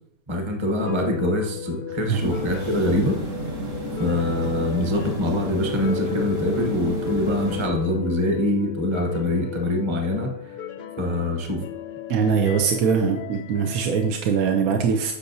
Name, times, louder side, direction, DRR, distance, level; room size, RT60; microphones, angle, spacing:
voice 1, 0.3-3.2 4.0-10.6 11.0-11.6, left 1 dB, 20° right, 2 dB, 1.0 m, -24 dB
sound 1, 0.8-14.1, left 9 dB, 65° left, 0.5 m, -35 dB
sound 2, 2.1-7.7, right 1 dB, 60° right, 1.5 m, -32 dB
voice 2, 12.1-15.1, right 6 dB, 75° right, 3 dB, 1.2 m, -22 dB
10.0 x 6.8 x 2.7 m, 0.79 s
omnidirectional pair, 1.5 m